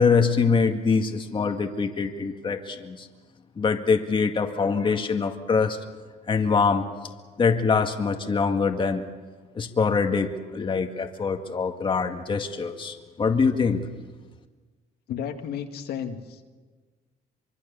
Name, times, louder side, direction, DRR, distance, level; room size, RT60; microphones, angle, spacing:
voice 1, 0.0-3.1 3.6-5.8 6.3-6.9 7.4-9.0 9.6-13.9, left 5 dB, 30° left, 4 dB, 2.1 m, -24 dB
voice 2, 15.1-16.5, left 8 dB, 70° left, 5 dB, 2.2 m, -33 dB
25.0 x 24.5 x 7.1 m, 1.4 s
cardioid pair, 110°, 17 cm